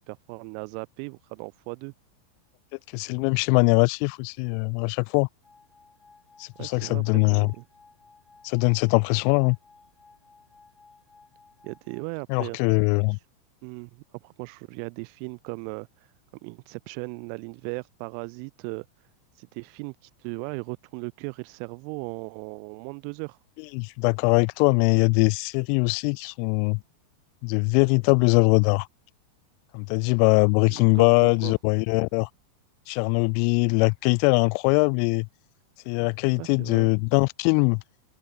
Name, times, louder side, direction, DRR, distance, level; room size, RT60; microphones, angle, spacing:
voice 1, 0.0-1.9 6.6-7.6 11.6-12.6 13.6-15.9 16.4-18.9 19.4-19.9 20.2-23.4 30.7-31.5 36.3-36.9, right 40 dB or more, 45° right, 1.5 m, -37 dB
voice 2, 2.9-5.3 6.4-7.5 8.4-9.6 12.3-13.2 23.7-26.8 27.4-28.9 29.7-32.3 32.9-35.3 35.9-37.8, left 40 dB or more, 45° left, 0.5 m, -22 dB
sound 1, 5.4-12.0, left 4 dB, 10° left, 3.4 m, -57 dB
figure-of-eight pair, 90°, 0 cm